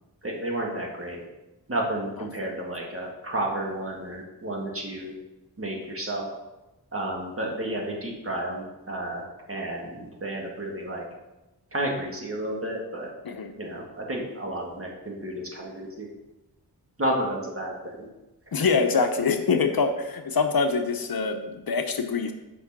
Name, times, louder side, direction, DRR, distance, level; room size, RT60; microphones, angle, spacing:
voice 1, 0.2-1.2 1.7-5.1 5.6-6.3 6.9-9.2 9.5-11.0 11.7-13.1 13.6-16.1 17.0-18.1, right 1 dB, 35° right, -1 dB, 2.0 m, -31 dB
voice 2, 18.5-22.3, left 5 dB, 60° left, 6 dB, 0.8 m, -25 dB
6.2 x 5.4 x 6.0 m, 1.0 s
wide cardioid pair, 70°, 39 cm